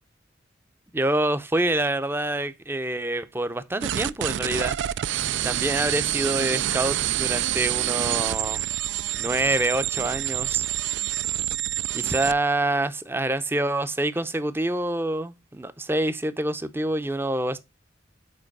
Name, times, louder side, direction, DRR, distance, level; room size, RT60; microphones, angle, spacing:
voice 1, 0.9-4.8 5.4-8.6 9.1-10.6 11.9-17.6, right 1 dB, 10° right, 0.5 m, -26 dB
sound 1, 3.8-12.4, right 13 dB, 65° right, 0.3 m, -27 dB
7.7 x 4.6 x 4.6 m
head